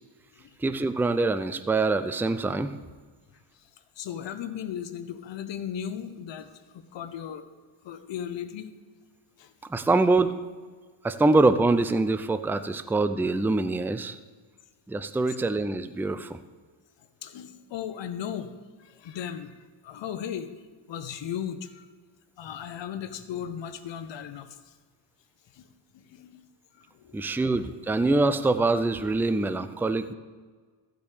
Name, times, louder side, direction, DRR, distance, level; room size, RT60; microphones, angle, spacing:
voice 1, 0.6-2.7 9.7-10.4 11.0-14.2 14.9-16.4 27.1-30.1, right 3 dB, 5° right, 11 dB, 0.5 m, -24 dB
voice 2, 4.0-7.5 7.8-8.7 9.4-9.5 15.3-15.4 17.2-18.5 18.8-19.5 19.8-20.5 20.9-21.9 22.4-24.7 25.5-25.7 25.9-26.4 26.9-27.6, left 9 dB, 65° left, 10 dB, 1.1 m, -36 dB
15.0 x 5.3 x 6.7 m, 1.5 s
cardioid pair, 80°, 48 cm